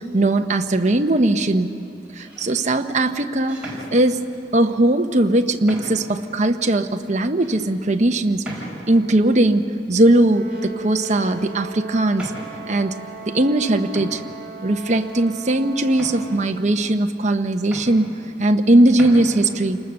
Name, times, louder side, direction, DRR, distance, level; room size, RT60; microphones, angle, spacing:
voice 1, 0.1-1.7 2.2-4.2 4.5-8.4 8.9-12.3 12.7-14.2 14.6-18.1 18.4-19.8, right 1 dB, 45° right, 6 dB, 1.0 m, -19 dB
sound 1, 0.8-1.2 2.0-2.6 3.5-4.5 5.1-5.2 5.7-6.2 6.7-6.8 7.4-7.6 8.4-9.1 10.2-10.7 11.0-11.3 12.1-12.8 13.6-13.7 13.9-15.2 15.9-16.8 17.3-17.4 17.6-18.6 18.9-19.2, right 1 dB, 5° right, 6.0 m, -38 dB
Brass instrument, 10.2-16.6, right 4 dB, 60° right, 2.2 m, -37 dB
29.0 x 20.0 x 6.7 m, 2.5 s
head